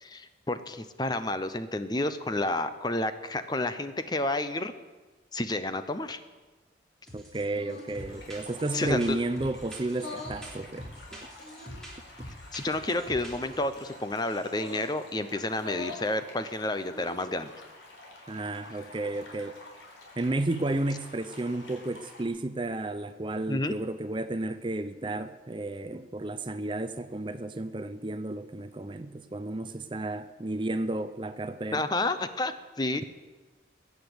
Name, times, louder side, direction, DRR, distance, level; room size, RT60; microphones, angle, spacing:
voice 1, 0.0-4.7 5.3-6.2 8.7-9.2 12.5-17.5 23.5-23.7 31.7-33.0, left 2 dB, 20° left, 0.7 m, -30 dB
sound 1, 7.1-7.4 7.7-13.9 14.3-14.8, equal, 5° left, 3.3 m, -45 dB
voice 2, 7.1-11.3 18.3-19.6 20.2-31.9, right 2 dB, 25° right, 0.5 m, -32 dB
sound 2, 7.5-8.0 8.6-9.1 9.9-10.5 11.4-11.9 12.8-13.1 14.5-14.9 15.5-16.1 16.8-17.3, left 3 dB, 65° left, 2.5 m, -43 dB
sound 3, 8.0-22.2, left 2 dB, 85° left, 4.1 m, -50 dB
21.0 x 8.3 x 8.0 m
head